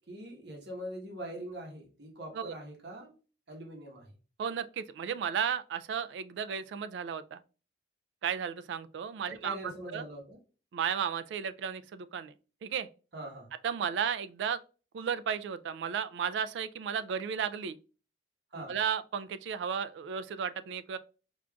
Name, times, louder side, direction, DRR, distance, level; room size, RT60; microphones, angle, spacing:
voice 1, 0.1-3.1 3.5-4.1 9.2-10.4 13.1-13.5 18.5-18.8, right 1 dB, 70° right, 1.1 m, -43 dB
voice 2, 4.4-7.4 8.2-9.6 9.9-10.0 10.7-12.3 12.6-12.9 13.6-14.6 14.9-17.8 18.7-21.0, right 7 dB, 90° right, 0.3 m, -34 dB
5.1 x 2.4 x 2.3 m
head